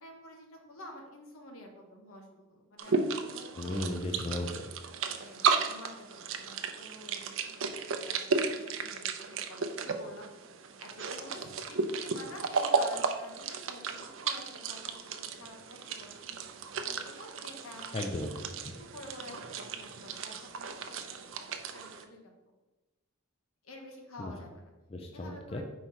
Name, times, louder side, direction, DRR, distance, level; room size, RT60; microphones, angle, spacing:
voice 1, 0.0-3.9 5.1-7.7 8.0-10.3 10.8-16.1 16.8-17.9 18.8-22.2 23.6-24.7 25.1-25.6, left 1 dB, 75° left, 2 dB, 1.2 m, -50 dB
sound 1, 2.8-22.1, right 5 dB, 60° right, 0.5 m, -34 dB
voice 2, 3.6-4.7 17.9-18.7 24.2-24.4 24.9-25.6, left 1 dB, 30° left, 2 dB, 0.4 m, -36 dB
4.6 x 4.1 x 5.6 m, 1.1 s
head